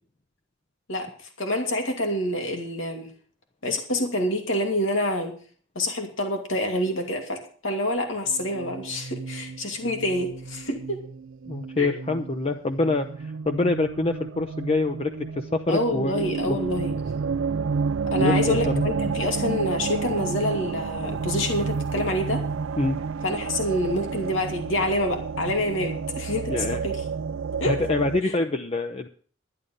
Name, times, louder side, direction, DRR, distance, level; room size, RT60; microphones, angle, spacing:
voice 1, 1.4-3.1 3.6-5.3 5.7-11.0 11.8-11.9 15.7-16.9 18.1-22.4 23.2-27.0 27.6-27.8 28.2-28.3, left 1 dB, 80° left, 3 dB, 2.5 m, -27 dB
sound 1, 8.3-28.2, right 5 dB, 85° right, 0.4 m, -30 dB
voice 2, 11.5-16.6 18.2-18.8 22.8-23.0 26.5-26.8 27.6-29.1, left 2 dB, 30° left, 6 dB, 0.7 m, -26 dB
11.0 x 10.5 x 5.4 m, 0.43 s
head